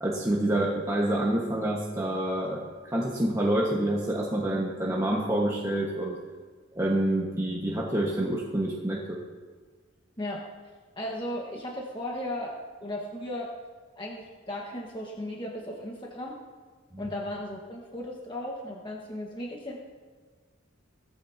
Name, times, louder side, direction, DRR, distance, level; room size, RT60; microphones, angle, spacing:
voice 1, 0.0-6.2 6.7-9.2 16.9-17.0, right 1 dB, 15° right, -4 dB, 1.5 m, -27 dB
voice 2, 10.9-12.5 12.8-13.5 14.0-16.3 17.0-19.8, left 1 dB, 25° left, -3 dB, 1.5 m, -36 dB
18.5 x 15.0 x 2.9 m, 1.5 s
head